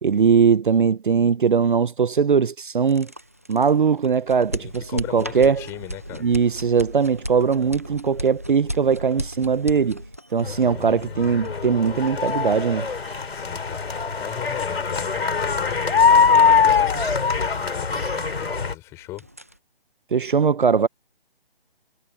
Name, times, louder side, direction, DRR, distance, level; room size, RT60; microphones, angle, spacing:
voice 1, 0.0-3.1 3.5-5.6 6.2-10.0 10.3-12.9 20.1-20.9, right 6 dB, 60° right, 0.8 m, -20 dB
sound 1, 2.8-18.6 18.9-19.6, equal, 15° right, 0.6 m, -36 dB
voice 2, 4.6-6.2 10.7-10.9 13.3-15.8 16.2-19.3, left 17 dB, 10° left, 5.4 m, -38 dB
sound 2, 10.4-18.7, left 5 dB, 90° left, 3.9 m, -22 dB
hypercardioid pair, 175°, 30 cm